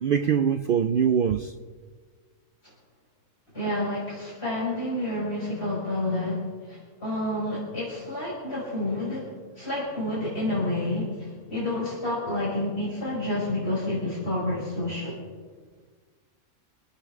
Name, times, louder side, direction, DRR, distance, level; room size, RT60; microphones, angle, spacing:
voice 1, 0.0-1.5, right 7 dB, 80° right, 0.4 m, -23 dB
voice 2, 3.5-9.3 9.6-15.2, left 1 dB, 45° left, 5.5 m, -29 dB
27.0 x 9.5 x 3.6 m
omnidirectional pair, 1.5 m